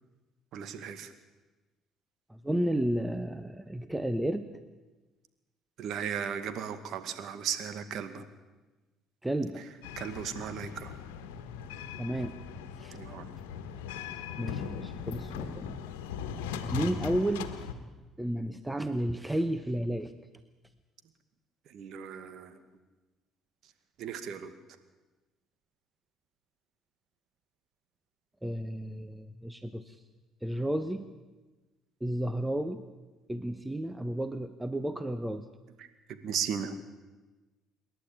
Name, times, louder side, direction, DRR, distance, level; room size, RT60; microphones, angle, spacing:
voice 1, 0.5-1.1 5.8-8.2 10.0-10.9 12.9-13.2 21.7-22.6 24.0-24.5 35.8-36.7, right 8 dB, 65° right, 10 dB, 2.0 m, -36 dB
voice 2, 2.3-4.5 9.2-9.6 12.0-12.4 12.8-13.0 14.4-15.8 16.7-17.5 18.2-20.1 28.4-29.9 30.4-31.0 32.0-32.8 33.3-35.5, right 1 dB, 10° right, 10 dB, 1.2 m, -32 dB
sound 1, 9.8-17.7, left 8 dB, 80° left, 1.5 m, -39 dB
27.0 x 11.5 x 9.0 m, 1.2 s
hypercardioid pair, 60°, 0 cm